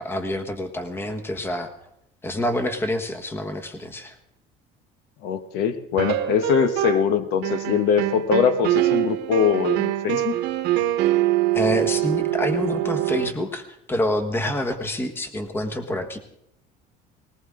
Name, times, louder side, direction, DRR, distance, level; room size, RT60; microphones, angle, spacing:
voice 1, 0.0-1.7 2.2-4.1 11.5-16.2, left 1 dB, 15° left, 8 dB, 1.3 m, -27 dB
voice 2, 5.2-10.4, left 7 dB, 65° left, 11 dB, 1.1 m, -22 dB
sound 1, 6.0-7.1 7.4-13.3, right 15 dB, 70° right, 1.2 m, -24 dB
19.5 x 18.5 x 3.8 m, 0.76 s
cardioid pair, 160°, 18 cm